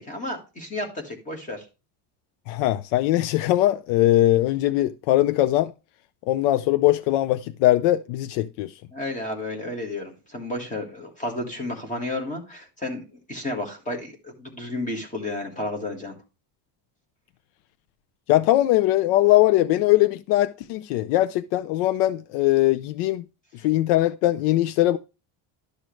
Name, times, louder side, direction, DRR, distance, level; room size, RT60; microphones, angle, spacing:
voice 1, 0.0-1.6 8.9-13.0 13.3-16.1, left 2 dB, 15° left, 1.7 m, -32 dB
voice 2, 2.5-5.7 6.3-8.7 18.3-23.2 23.6-25.0, left 15 dB, 85° left, 0.6 m, -21 dB
12.0 x 6.2 x 3.2 m
cardioid pair, 175°, 49 cm